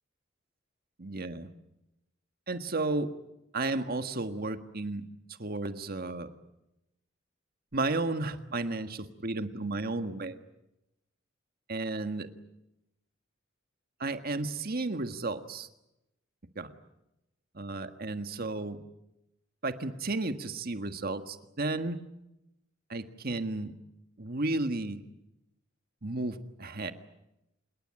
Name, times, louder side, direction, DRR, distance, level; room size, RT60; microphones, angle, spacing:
voice 1, 1.0-1.5 2.5-3.1 3.5-6.3 7.7-10.4 11.7-12.3 14.0-15.7 16.6-16.7 17.5-18.8 19.6-22.0 22.9-23.7 24.2-25.0 26.0-26.9, right 2 dB, 50° right, 9 dB, 1.7 m, -33 dB
27.0 x 21.0 x 8.8 m, 0.89 s
head